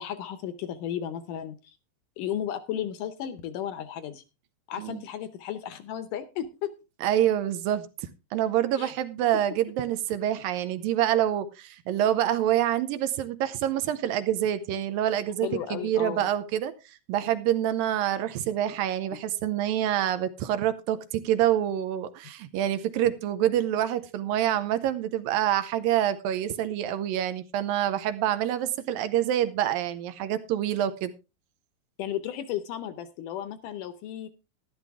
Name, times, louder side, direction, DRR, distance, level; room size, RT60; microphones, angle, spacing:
voice 1, 0.0-1.8 2.2-4.2 4.7-6.7 8.8-8.9 15.4-16.3 32.0-34.3, left 10 dB, 75° left, 2.1 m, -34 dB
voice 2, 7.0-7.9 8.3-31.1, right 11 dB, 75° right, 2.4 m, -26 dB
12.5 x 11.5 x 3.5 m
omnidirectional pair, 4.3 m